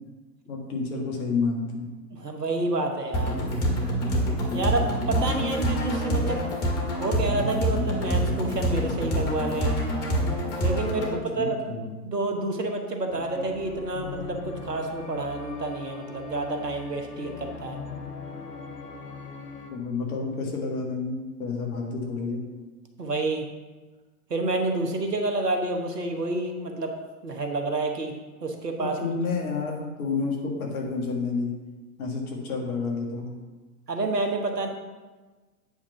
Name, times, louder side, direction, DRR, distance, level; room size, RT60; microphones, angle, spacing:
voice 1, 0.5-1.9 11.0-12.0 19.7-22.4 28.8-31.5 32.0-33.3, left 4 dB, 65° left, -1 dB, 1.8 m, -30 dB
voice 2, 2.1-3.4 4.5-6.4 7.0-9.8 10.6-17.8 23.0-23.5 24.3-26.9 27.2-28.1 28.4-29.0 33.9-34.7, right 2 dB, 90° right, 4 dB, 1.2 m, -29 dB
sound 1, 3.1-11.1, equal, 30° left, 2.0 m, -26 dB
sound 2, 13.1-19.7, left 4 dB, 85° left, 1.1 m, -40 dB
8.7 x 3.7 x 5.6 m, 1.3 s
figure-of-eight pair, 105°, 47 cm